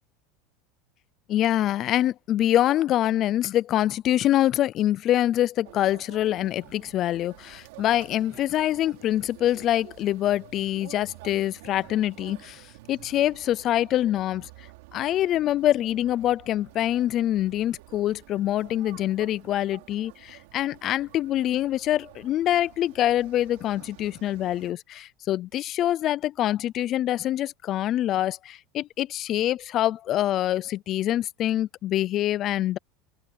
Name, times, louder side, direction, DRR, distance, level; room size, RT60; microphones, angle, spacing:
voice 1, 1.3-12.6 12.9-14.5 14.9-32.8, left 13 dB, 30° left, 0.4 m, -25 dB
sound 1, 5.6-24.7, right 20 dB, 70° right, 3.3 m, -49 dB
open air
supercardioid pair, 175°, 0 cm